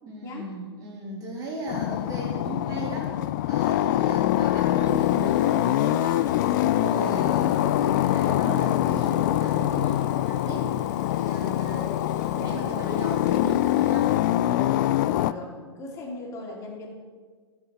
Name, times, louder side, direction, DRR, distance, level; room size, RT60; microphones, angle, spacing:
voice 1, 0.0-3.1 3.5-11.9 12.3-14.1, right 1 dB, 25° right, -4 dB, 3.4 m, -36 dB
sound 1, 1.7-15.3, left 14 dB, 40° left, 0.3 m, -24 dB
Water tap faucet / Fill (with liquid), 4.7-14.6 15.0-15.2, left 2 dB, 90° left, 2.3 m, -55 dB
sound 2, 4.8-11.0, right 2 dB, 90° right, 0.8 m, -46 dB
voice 2, 11.7-12.6 14.5-16.9, left 2 dB, 20° left, -3 dB, 2.9 m, -39 dB
15.5 x 6.7 x 4.2 m, 1.5 s
figure-of-eight pair, 110°, 15 cm